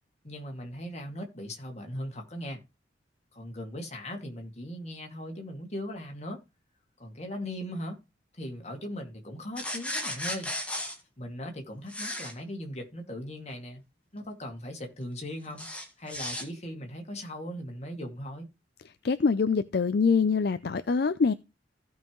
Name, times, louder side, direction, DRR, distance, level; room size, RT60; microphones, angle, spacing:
voice 1, 0.2-2.6 3.3-6.4 7.0-8.0 8.4-10.5 11.2-13.8 14.1-15.7 16.0-18.5, equal, 35° left, 2.2 m, -39 dB
sound 1, 9.6-11.0 11.9-12.3 15.6-16.4, left 1 dB, 5° left, 1.8 m, -34 dB
voice 2, 19.0-21.3, left 5 dB, 55° left, 0.4 m, -24 dB
15.5 x 5.5 x 3.1 m
head